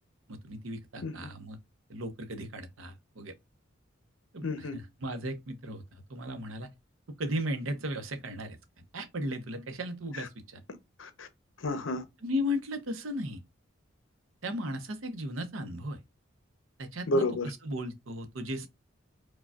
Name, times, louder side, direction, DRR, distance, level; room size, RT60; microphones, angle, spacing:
voice 1, 0.3-1.6 1.9-3.3 4.3-6.7 7.2-8.6 8.9-10.6 12.2-13.4 14.4-16.0 16.8-18.7, equal, 85° right, 0.7 m, -36 dB
voice 2, 4.4-4.8 10.1-10.3 10.7-11.3 11.6-12.0 17.1-17.5, left 1 dB, 75° left, 0.7 m, -31 dB
4.8 x 2.3 x 2.3 m
head